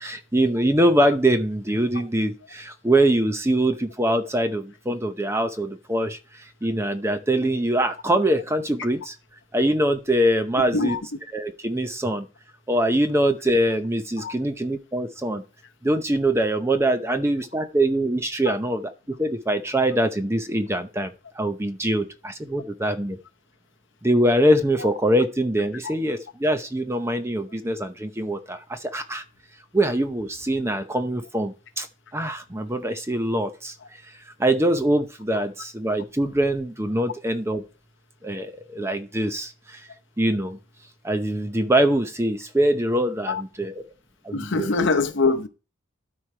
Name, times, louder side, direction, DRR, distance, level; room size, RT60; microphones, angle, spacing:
voice 1, 0.0-9.2 9.5-11.0 11.3-12.3 12.7-15.4 15.8-18.9 19.2-23.2 24.0-29.2 29.7-31.9 32.1-33.8 34.1-37.6 38.2-39.9 40.2-40.6 41.0-43.8 44.2-44.7, right 1 dB, 10° right, 0.7 m, -23 dB
voice 2, 44.3-45.5, left 3 dB, 55° left, 0.8 m, -23 dB
12.5 x 4.7 x 4.4 m
head